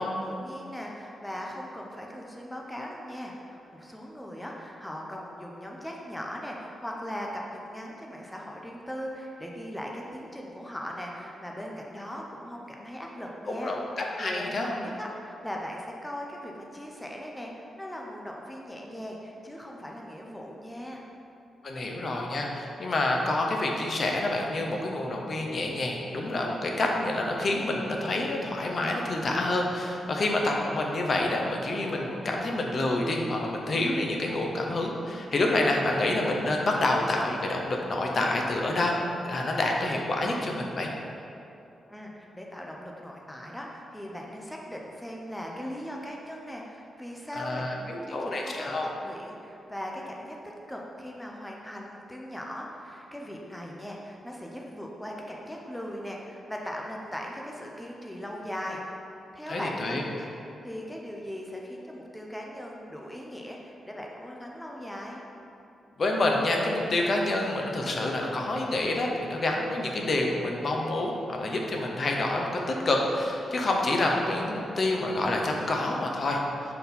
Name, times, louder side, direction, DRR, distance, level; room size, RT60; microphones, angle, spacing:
voice 1, 0.0-13.8 14.2-21.0 41.9-58.8 59.3-60.3 60.6-65.2, equal, 5° left, -1 dB, 0.6 m, -39 dB
voice 2, 13.5-14.7 21.6-39.0 39.2-40.9 47.4-48.9 59.5-60.0 66.0-76.4, left 2 dB, 45° left, 0 dB, 0.7 m, -28 dB
5.3 x 4.3 x 4.2 m, 2.7 s
cardioid pair, 110°, 0 cm